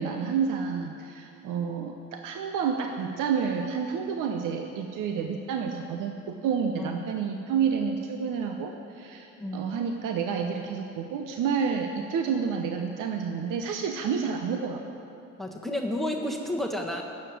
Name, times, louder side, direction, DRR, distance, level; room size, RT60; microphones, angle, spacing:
voice 1, 0.0-14.8, right 6 dB, 60° right, 4 dB, 1.0 m, -29 dB
voice 2, 15.4-17.0, left 1 dB, ahead, 2 dB, 1.4 m, -31 dB
12.5 x 7.4 x 9.3 m, 2.8 s
hypercardioid pair, 60°, 35 cm